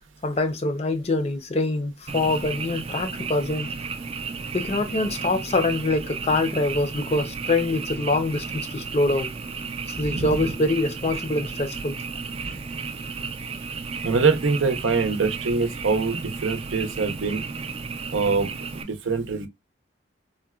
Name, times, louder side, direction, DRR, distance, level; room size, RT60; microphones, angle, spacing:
voice 1, 0.2-3.7 4.5-9.3 9.9-12.0, left 2 dB, 35° left, 0.5 m, -25 dB
Frog, 2.1-18.8, right 5 dB, 30° right, 0.4 m, -33 dB
voice 2, 10.0-10.5 14.0-17.4 18.1-19.5, right 4 dB, 80° right, 0.6 m, -24 dB
3.8 x 2.2 x 2.2 m
head